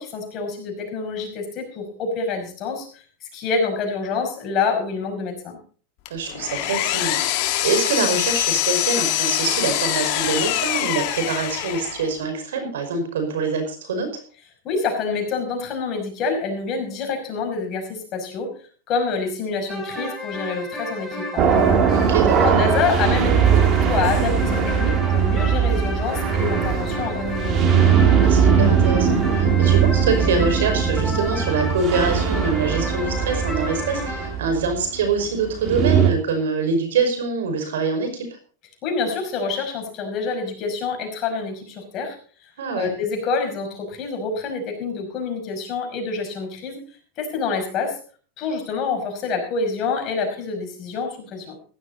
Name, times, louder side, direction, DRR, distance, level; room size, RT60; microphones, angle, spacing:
voice 1, 0.0-5.6 14.6-18.5 18.9-21.7 22.4-27.6 38.8-42.2 42.4-46.8 47.2-48.0 48.4-51.6, left 4 dB, 40° left, 2 dB, 5.5 m, -27 dB
Power tool, 6.0-12.1, left 13 dB, 55° left, 1.9 m, -24 dB
voice 2, 6.1-14.2 21.9-22.5 28.2-38.2 42.6-42.9, right 4 dB, 85° right, 6 dB, 5.3 m, -24 dB
sound 1, 19.7-34.3, left 2 dB, 5° right, 4.4 m, -32 dB
sound 2, 21.4-36.1, right 7 dB, 40° right, 2.5 m, -20 dB
15.5 x 12.0 x 4.1 m, 0.41 s
supercardioid pair, 130°, 0 cm